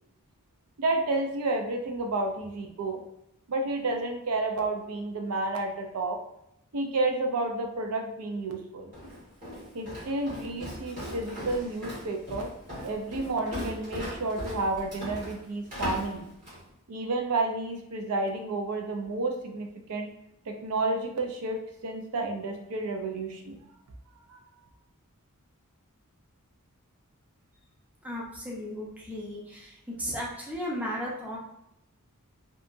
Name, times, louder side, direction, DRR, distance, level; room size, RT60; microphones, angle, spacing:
voice 1, 0.8-3.0 3.5-6.2 6.7-8.9 9.7-12.5 12.8-16.3 16.9-20.1 20.5-23.6 24.3-24.4, right 2 dB, 85° right, 3 dB, 0.5 m, -31 dB
Walk footsteps, 8.9-16.7, left 1 dB, 35° right, 1.4 m, -39 dB
voice 2, 28.0-29.7 30.0-31.4, equal, 5° right, -4 dB, 0.5 m, -35 dB
2.7 x 2.3 x 2.5 m, 0.79 s
head